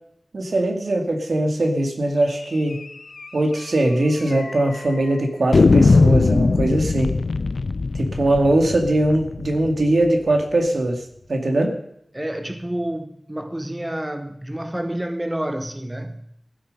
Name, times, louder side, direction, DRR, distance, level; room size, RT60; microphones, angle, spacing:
voice 1, 0.3-2.8 3.3-7.1 7.9-11.0 11.3-11.8, right 1 dB, 75° right, 2.4 m, -21 dB
sound 1, 2.7-2.9 3.2-3.3 3.6-3.7 4.3-4.8 5.5-10.3, left 3 dB, 75° left, 0.6 m, -19 dB
voice 2, 12.1-16.2, right 1 dB, 15° right, 1.2 m, -29 dB
15.0 x 9.3 x 5.5 m
wide cardioid pair, 55°, 0 cm